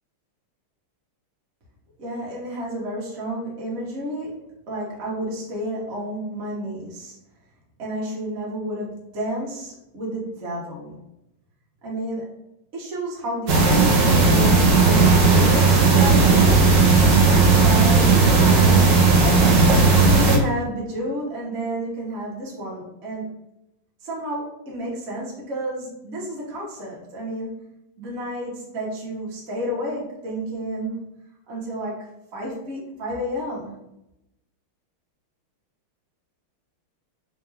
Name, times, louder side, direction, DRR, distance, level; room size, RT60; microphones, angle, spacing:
voice 1, 2.0-7.1 7.8-10.9 11.8-12.3 12.7-16.7 17.2-19.6 20.0-23.3 24.0-27.5 28.0-31.0 31.5-33.7, right 1 dB, 45° right, -4 dB, 0.9 m, -31 dB
sound 1, 13.5-20.4, right 4 dB, 80° right, 0.7 m, -15 dB
4.4 x 2.4 x 3.3 m, 0.86 s
omnidirectional pair, 2.3 m